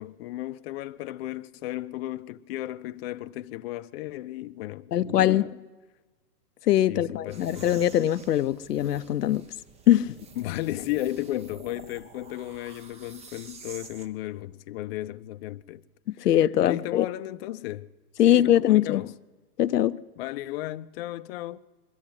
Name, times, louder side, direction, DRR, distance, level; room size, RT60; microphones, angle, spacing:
voice 1, 0.0-5.6 6.9-7.7 10.4-15.8 16.6-17.9 18.3-19.1 20.2-21.6, left 15 dB, 40° left, 0.6 m, -34 dB
voice 2, 4.9-5.5 6.7-9.5 9.9-10.2 16.2-17.1 18.2-19.0 19.6-20.0, left 12 dB, 80° left, 0.7 m, -22 dB
sound 1, 7.3-14.1, right 5 dB, 15° right, 0.7 m, -48 dB
22.0 x 13.5 x 9.2 m
hypercardioid pair, 120°, 47 cm